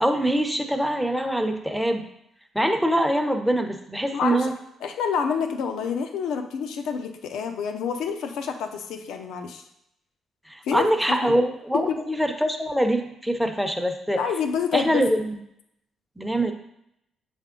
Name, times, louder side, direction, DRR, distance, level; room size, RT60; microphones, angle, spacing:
voice 1, 0.0-2.1 2.5-4.5 10.5-14.2 14.7-15.4 16.2-16.5, right 1 dB, ahead, 5 dB, 0.7 m, -24 dB
voice 2, 4.1-4.5 4.8-9.6 10.6-11.2 11.7-11.8 14.2-15.0, left 6 dB, 85° left, 6 dB, 0.6 m, -28 dB
7.3 x 3.5 x 3.7 m, 0.78 s
cardioid pair, 90°, 0 cm